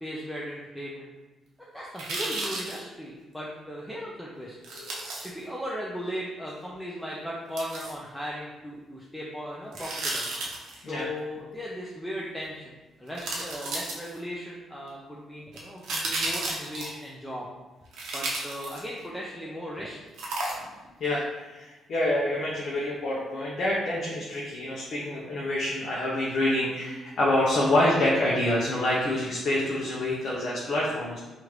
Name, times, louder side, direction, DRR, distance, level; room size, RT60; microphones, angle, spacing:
voice 1, 0.0-1.1 1.6-4.6 5.2-10.3 10.9-17.5 18.1-20.0, equal, ahead, -5 dB, 0.5 m, -37 dB
sound 1, 2.0-2.8 4.6-5.3 7.6-7.9 9.7-10.8 12.4-12.5 13.1-14.3 15.5-17.0 17.9-19.0 20.2-20.9 21.2-21.3, right 2 dB, 80° right, 0.7 m, -33 dB
voice 2, 4.7-5.0 10.8-11.1 21.0-31.2, left 1 dB, 60° left, -5 dB, 0.6 m, -27 dB
3.0 x 2.5 x 3.1 m, 1.1 s
cardioid pair, 90°, 0 cm